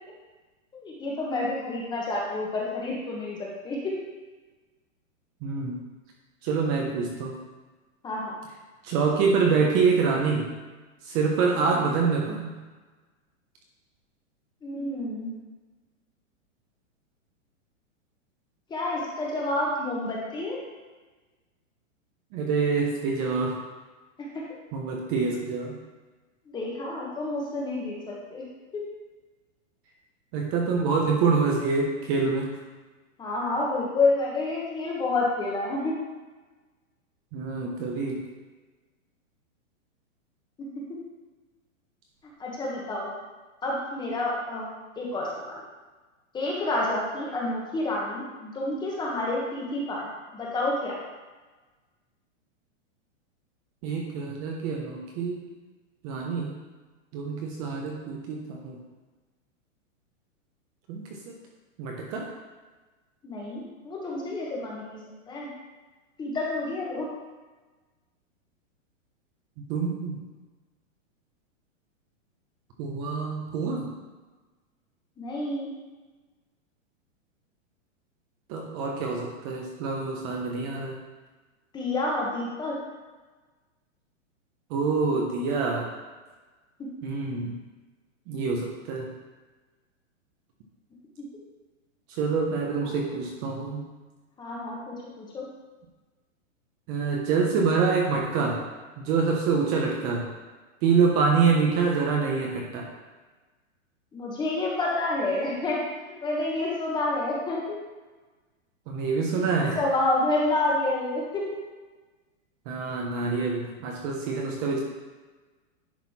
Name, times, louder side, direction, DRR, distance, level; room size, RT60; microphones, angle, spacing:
voice 1, 0.7-3.9 8.0-8.3 14.6-15.3 18.7-20.6 24.2-24.4 26.5-28.0 28.3-28.4 28.7-28.8 33.2-35.9 40.6-41.0 42.4-43.1 43.6-44.7 45.0-45.5 46.3-50.1 50.3-50.9 63.2-65.0 65.3-65.5 66.2-67.1 75.2-75.7 81.7-82.8 86.8-86.9 92.8-92.9 94.4-95.5 104.1-105.8 106.2-107.8 109.6-111.4, left 2 dB, 10° left, -3 dB, 1.2 m, -29 dB
voice 2, 5.4-5.8 6.4-7.4 8.8-10.5 11.0-12.5 22.3-23.6 24.7-25.7 30.3-32.6 37.3-38.2 53.8-55.4 56.0-56.6 57.1-58.8 60.9-61.4 61.8-62.3 69.7-70.2 72.8-73.9 78.5-81.0 84.7-85.9 87.0-87.6 88.3-89.1 92.1-93.8 96.9-98.6 99.0-100.2 100.8-102.9 108.9-109.8 112.7-114.8, right 5 dB, 30° right, 0 dB, 0.9 m, -26 dB
10.0 x 4.1 x 4.3 m, 1.3 s
hypercardioid pair, 155°, 39 cm